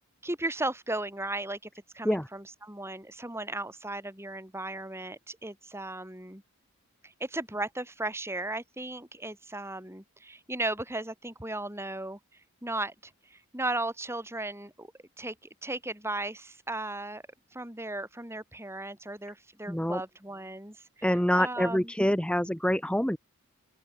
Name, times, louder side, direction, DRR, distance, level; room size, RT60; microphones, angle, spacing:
voice 1, 0.2-1.7 1.9-6.4 7.0-12.2 12.6-14.9 15.2-15.4 15.6-17.2 17.5-21.1 21.3-21.9, right 2 dB, 10° right, 4.2 m, -36 dB
voice 2, 19.7-20.0 21.0-23.2, equal, 5° left, 1.3 m, -26 dB
open air
head